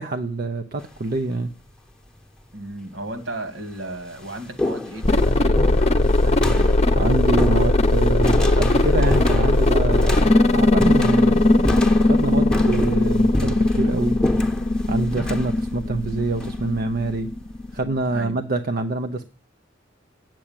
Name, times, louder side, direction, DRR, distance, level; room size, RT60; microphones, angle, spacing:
voice 1, 0.0-1.5 6.2-6.7 7.0-11.6 12.0-14.2 14.9-17.3 17.7-19.3, right 2 dB, 50° right, 7 dB, 0.7 m, -26 dB
sound 1, 0.8-1.2 2.2-2.3 3.1-3.2 3.6-17.1, left 1 dB, 5° left, 1.0 m, -30 dB
voice 2, 2.5-5.6 18.1-18.4, right 1 dB, 70° right, 8 dB, 2.2 m, -34 dB
sound 2, 5.0-18.3, left 2 dB, 35° left, 0.8 m, -19 dB
8.5 x 7.6 x 8.8 m, 0.38 s
head